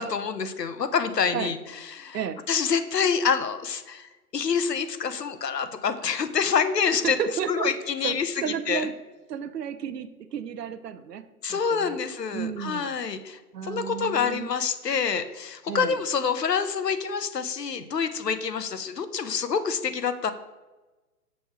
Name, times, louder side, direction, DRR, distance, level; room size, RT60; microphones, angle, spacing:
voice 1, 0.0-1.6 1.9-2.2 2.5-7.2 7.5-8.3 8.7-8.9 11.4-20.3, left 6 dB, 90° left, 10 dB, 0.9 m, -27 dB
voice 2, 6.9-7.7 8.0-8.9 9.3-12.0 12.3-12.9 13.5-14.5 15.7-16.0, right 8 dB, 80° right, 10 dB, 0.7 m, -32 dB
6.3 x 3.5 x 5.9 m, 1.2 s
hypercardioid pair, 135°, 47 cm